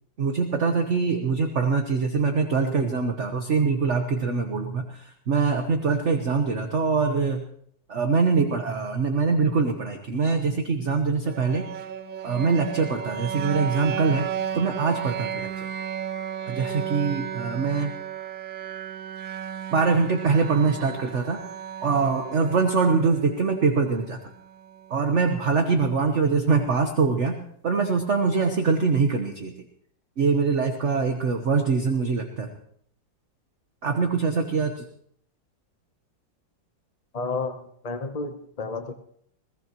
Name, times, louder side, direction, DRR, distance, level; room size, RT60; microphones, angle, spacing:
voice 1, 0.2-7.4 7.9-11.6 12.2-14.3 14.5-15.7 16.5-17.9 19.7-21.4 21.8-24.2 24.9-27.4 27.6-29.5 30.2-32.5 33.8-34.8, right 4 dB, 45° right, 5 dB, 1.3 m, -23 dB
sound 1, 11.2-25.2, right 9 dB, 85° right, 1.6 m, -34 dB
voice 2, 37.1-38.9, left 3 dB, 35° left, 5 dB, 0.6 m, -31 dB
21.5 x 17.0 x 3.0 m, 0.65 s
omnidirectional pair, 2.0 m